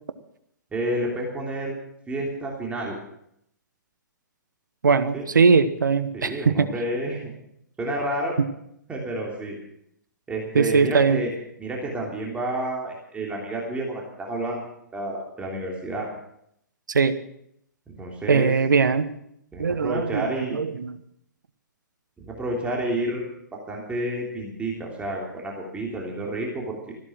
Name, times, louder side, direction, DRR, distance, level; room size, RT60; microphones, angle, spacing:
voice 1, 0.7-1.8 2.1-3.0 5.1-5.2 6.1-7.3 7.8-8.4 8.9-9.5 10.3-11.3 11.6-14.6 14.9-16.1 17.9-18.5 19.5-20.6 22.2-26.9, right 1 dB, 10° right, -2 dB, 3.2 m, -30 dB
voice 2, 4.8-6.7 10.5-11.2 16.9-17.1 18.3-19.1 19.6-20.3 20.5-20.9, right 5 dB, 75° right, 12 dB, 1.2 m, -20 dB
14.5 x 12.5 x 6.1 m, 0.73 s
figure-of-eight pair, 120°, 10 cm